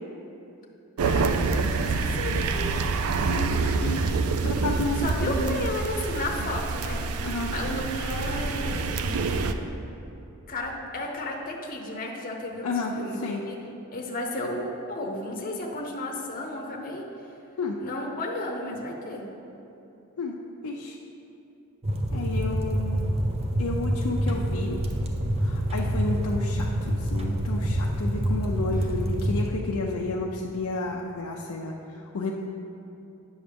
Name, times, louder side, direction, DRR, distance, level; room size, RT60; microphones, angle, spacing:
voice 1, 1.0-1.4 1.8-2.7 4.9-9.2 10.5-13.2 13.5-13.6 13.9-17.0 17.8-19.3 28.8-28.9, left 1 dB, 40° left, 0 dB, 0.8 m, -33 dB
sound 1, 1.0-9.5, right 4 dB, 75° right, 0.4 m, -27 dB
voice 2, 3.2-5.6 7.2-7.5 12.6-13.4 17.6-17.8 20.2-20.4 20.6-20.9 22.1-23.1 23.6-24.8 25.4-32.3, left 3 dB, 80° left, -2 dB, 0.5 m, -31 dB
sound 2, 21.8-29.5, equal, 30° right, 0.6 m, -27 dB
8.7 x 6.3 x 3.5 m, 2.9 s
head